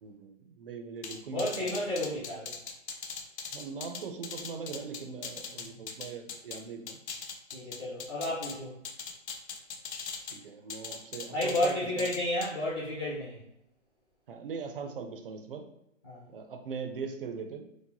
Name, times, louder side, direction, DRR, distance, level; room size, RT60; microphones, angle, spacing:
voice 1, 0.0-1.8 3.5-7.0 10.3-12.1 14.3-15.7 16.3-17.6, right 5 dB, 50° right, 5 dB, 0.4 m, -40 dB
sound 1, 1.0-6.6 6.9-8.5 8.8-10.4 10.7-11.7 12.0-12.5, left 6 dB, 60° left, 0.6 m, -40 dB
voice 2, 1.3-2.5 7.5-8.8 11.3-13.4 16.0-16.2, left 1 dB, 20° left, -10 dB, 0.5 m, -32 dB
4.6 x 2.0 x 2.6 m, 0.79 s
hypercardioid pair, 170°, 38 cm